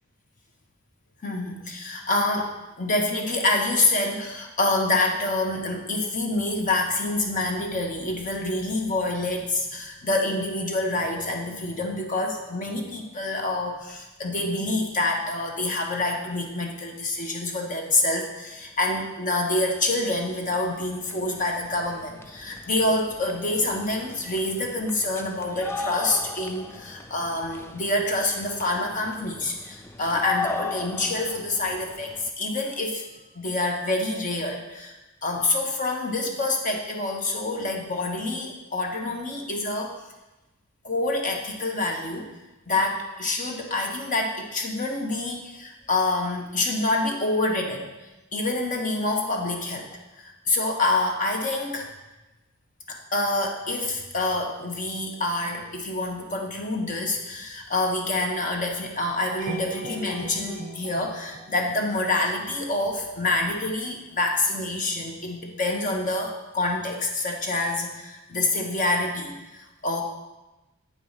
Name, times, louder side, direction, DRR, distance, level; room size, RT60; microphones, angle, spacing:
voice 1, 1.2-33.0 33.3-39.9 40.8-42.3 42.7-47.9 48.3-49.9 50.2-51.9 52.9-70.0, left 2 dB, 40° left, 2 dB, 1.1 m, -27 dB
sound 1, 19.2-19.3 19.6-32.3, left 4 dB, 10° left, 0.3 m, -38 dB
sound 2, 59.4-62.5, right 1 dB, 35° right, 0.8 m, -38 dB
8.4 x 4.7 x 5.6 m, 1.0 s
head